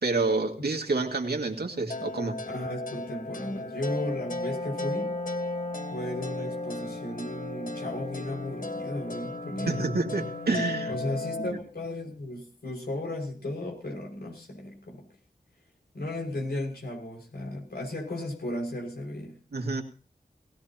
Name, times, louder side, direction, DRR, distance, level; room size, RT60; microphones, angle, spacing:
voice 1, 0.0-2.4 9.7-11.0 11.4-11.6 19.5-19.8, right 3 dB, 75° right, 3 dB, 2.3 m, -28 dB
sound 1, 1.9-11.5, left 2 dB, 55° left, 1.5 m, -35 dB
voice 2, 2.5-5.2 5.9-9.9 10.9-15.0 15.9-19.4, left 1 dB, 80° left, 0 dB, 6.1 m, -35 dB
20.0 x 17.0 x 3.0 m, 0.37 s
wide cardioid pair, 55°, 17 cm